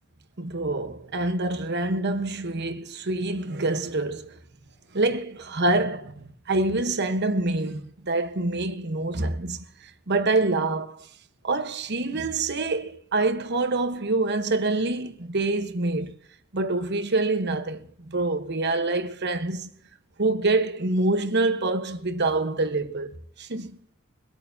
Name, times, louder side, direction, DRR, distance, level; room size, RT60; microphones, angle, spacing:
voice 1, 0.4-4.4 4.9-11.1 11.4-16.1 16.5-19.7 20.2-23.8, right 2 dB, 55° right, 1.1 m, -26 dB
24.0 x 8.9 x 2.7 m
head